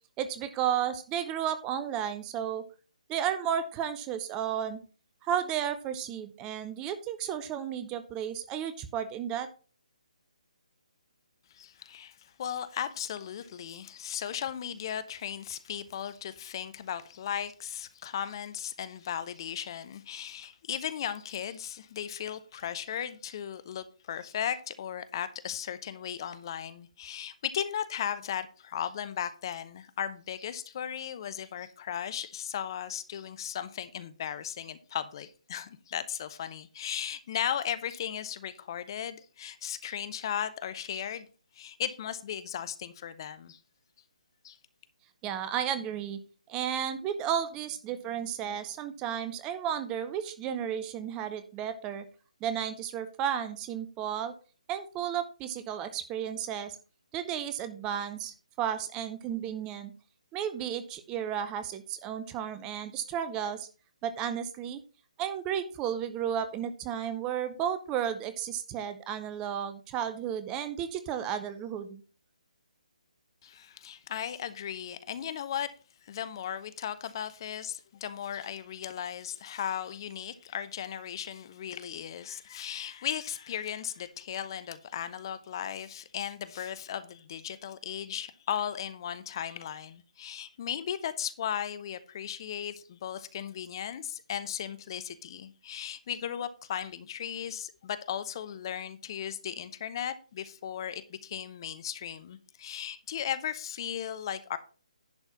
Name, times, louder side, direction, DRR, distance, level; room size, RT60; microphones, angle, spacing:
voice 1, 0.2-2.6 3.1-4.8 5.2-9.5 45.2-46.2 46.5-52.0 52.4-54.3 54.7-56.8 57.1-59.9 60.3-63.7 64.0-64.8 65.2-72.0, right 9 dB, 15° right, 0.7 m, -33 dB
voice 2, 11.5-41.3 41.5-43.6 44.4-44.6 73.4-75.7 76.0-104.6, left 9 dB, 35° left, 0.8 m, -36 dB
10.5 x 4.5 x 5.8 m
figure-of-eight pair, 140°, 4 cm